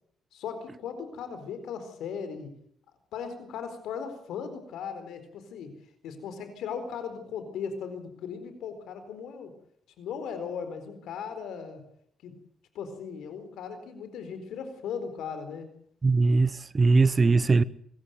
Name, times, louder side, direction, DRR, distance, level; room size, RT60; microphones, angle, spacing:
voice 1, 0.3-2.5 3.1-5.7 6.0-9.5 10.0-11.8 12.2-12.3 12.7-15.7, left 6 dB, 80° left, 4.3 m, -37 dB
voice 2, 16.0-17.6, right 3 dB, 30° right, 0.9 m, -21 dB
25.0 x 14.0 x 9.4 m
cardioid pair, 90°, 0 cm